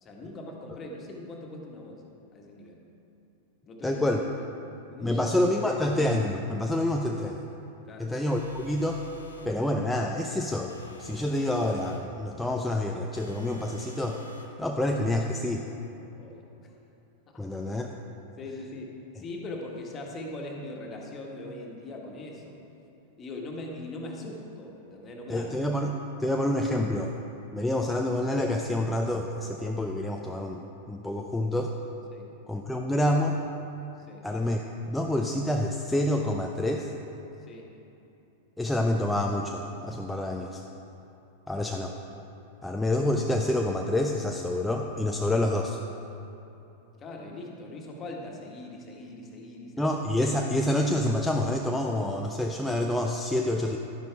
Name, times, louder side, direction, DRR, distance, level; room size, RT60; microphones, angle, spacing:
voice 1, 0.0-2.0 2.3-2.8 3.7-4.1 4.4-4.5 4.9-5.2 5.6-5.8 7.8-8.1 16.2-16.7 17.3-17.4 18.1-22.6 23.2-25.5 32.1-32.3 32.5-32.6 34.0-34.3 37.4-37.7 41.6-41.7 47.0-50.0, left 2 dB, 30° left, 0 dB, 1.7 m, -41 dB
voice 2, 3.8-4.2 5.0-7.4 8.0-9.0 9.4-10.7 11.0-14.2 14.6-15.6 17.4-17.9 25.3-25.9 26.2-27.1 27.5-30.6 30.9-31.7 32.5-33.4 34.2-34.6 34.9-36.9 38.6-40.6 41.5-41.9 42.6-45.8 49.8-53.8, left 1 dB, 5° left, 1 dB, 0.6 m, -27 dB
sound 1, 8.3-9.6 10.7-12.1 13.1-14.6, right 1 dB, 85° left, 1.1 m, -47 dB
12.0 x 10.5 x 3.6 m, 2.9 s
figure-of-eight pair, 95°, 0 cm